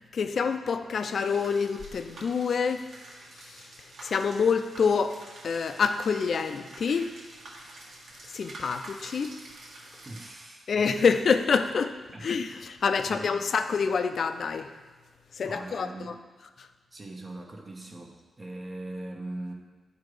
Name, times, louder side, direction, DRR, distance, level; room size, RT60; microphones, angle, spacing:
voice 1, 0.0-2.8 3.4-3.6 4.0-7.1 8.3-9.4 10.7-14.7 15.3-16.1 16.6-16.7, left 5 dB, 55° left, 8 dB, 0.5 m, -27 dB
sound 1, 1.2-10.3, right 1 dB, 75° right, 1.6 m, -48 dB
voice 2, 10.0-10.7 11.0-11.1 12.1-12.3 13.0-13.4 15.4-16.2 16.9-19.5, right 2 dB, 25° right, 1 dB, 0.9 m, -40 dB
9.3 x 4.9 x 4.9 m, 1.3 s
wide cardioid pair, 125°, 0 cm